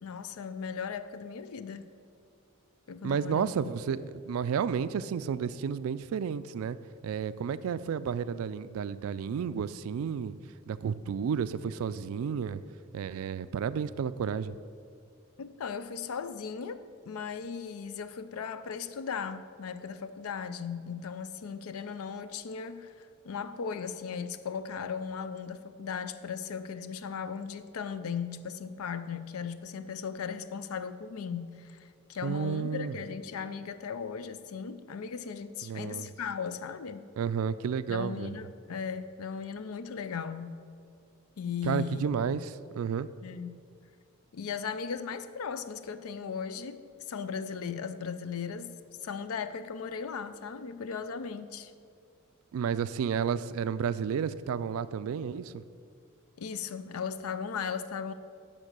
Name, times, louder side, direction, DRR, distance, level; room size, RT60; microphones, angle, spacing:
voice 1, 0.0-1.9 2.9-3.7 15.4-16.8 17.1-37.0 37.9-40.6 41.4-42.4 43.2-43.6 44.3-46.8 47.1-48.7 49.0-51.7 56.4-58.1, left 6 dB, 85° left, 12 dB, 0.4 m, -37 dB
voice 2, 3.0-6.8 7.0-10.3 10.7-12.6 12.9-14.5 32.2-33.0 35.6-36.1 37.2-38.4 41.6-43.1 52.5-55.6, right 7 dB, 75° right, 15 dB, 0.3 m, -31 dB
9.9 x 3.7 x 6.5 m, 2.3 s
head